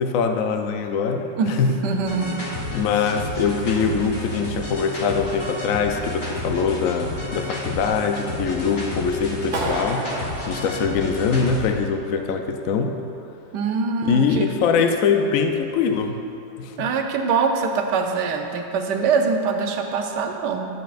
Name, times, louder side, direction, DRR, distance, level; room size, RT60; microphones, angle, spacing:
voice 1, 0.0-1.8 2.7-10.0 10.5-13.0 14.0-16.2 16.6-16.9, left 5 dB, 80° left, 5 dB, 0.7 m, -23 dB
voice 2, 1.4-2.5 13.5-14.8 16.8-20.7, right 5 dB, 70° right, 3 dB, 1.2 m, -24 dB
sound 1, 2.0-11.7, left 2 dB, 40° left, 1.5 m, -31 dB
Clapping, 9.5-11.6, right 1 dB, 50° right, 1.3 m, -30 dB
12.5 x 8.7 x 2.5 m, 2.8 s
omnidirectional pair, 2.1 m